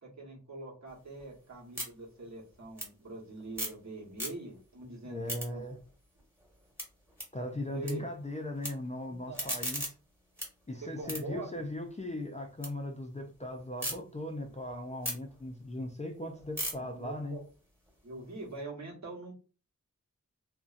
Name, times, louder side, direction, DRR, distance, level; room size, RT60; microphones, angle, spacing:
voice 1, 0.0-5.6 7.7-8.0 9.3-9.6 10.8-11.5 16.8-17.4 18.0-19.3, right 2 dB, 60° right, -3 dB, 1.1 m, -43 dB
sound 1, 0.9-4.7 5.0-7.9 8.2-8.7 9.1-12.7 13.1-13.9 14.4-18.6, equal, 10° right, 1.2 m, -41 dB
voice 2, 5.0-5.8 7.3-9.9 10.7-17.4, left 1 dB, 20° left, 3 dB, 0.4 m, -38 dB
2.6 x 2.1 x 2.4 m, 0.36 s
wide cardioid pair, 60°, 32 cm